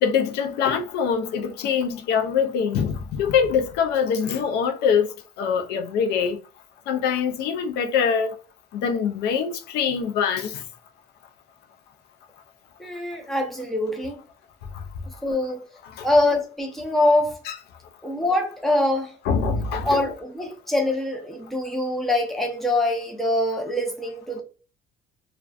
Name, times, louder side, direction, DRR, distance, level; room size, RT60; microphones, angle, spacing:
voice 1, 0.0-5.1 5.4-6.4 6.9-8.3 8.8-10.6 16.0-16.1 17.5-17.6 19.3-20.0, left 7 dB, 80° left, 0.4 m, -23 dB
voice 2, 12.8-14.2 15.2-15.6 16.0-17.4 18.0-19.1 19.8-24.4, left 1 dB, ahead, 0.6 m, -24 dB
2.3 x 2.2 x 2.3 m
cardioid pair, 110°, 17 cm